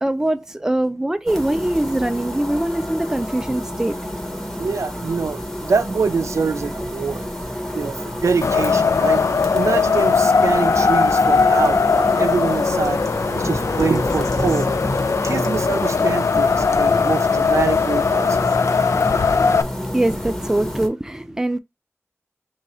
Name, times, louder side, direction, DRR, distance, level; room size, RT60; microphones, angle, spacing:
voice 1, 0.0-4.0 19.8-21.6, right 1 dB, 10° right, 0.4 m, -22 dB
sound 1, 1.3-20.9, equal, 10° left, 0.9 m, -29 dB
voice 2, 4.6-7.3 7.7-8.0 8.2-9.2 9.5-13.0 13.3-14.7 15.2-18.4, right 5 dB, 85° right, 0.4 m, -24 dB
Wind, 8.4-19.6, left 5 dB, 75° left, 0.3 m, -19 dB
3.6 x 2.4 x 4.2 m
wide cardioid pair, 80°, 5 cm